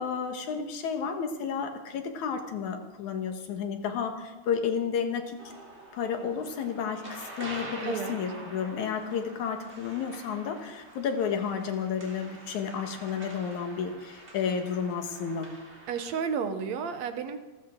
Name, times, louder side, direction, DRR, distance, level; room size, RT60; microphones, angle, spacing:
voice 1, 0.0-5.5 5.9-15.5, left 6 dB, 75° left, 5 dB, 2.8 m, -32 dB
sound 1, 5.4-16.1, right 2 dB, 20° right, 3.3 m, -46 dB
voice 2, 7.8-8.2 15.9-17.4, right 6 dB, 70° right, 8 dB, 2.1 m, -31 dB
28.5 x 13.0 x 3.7 m, 1.1 s
omnidirectional pair, 3.5 m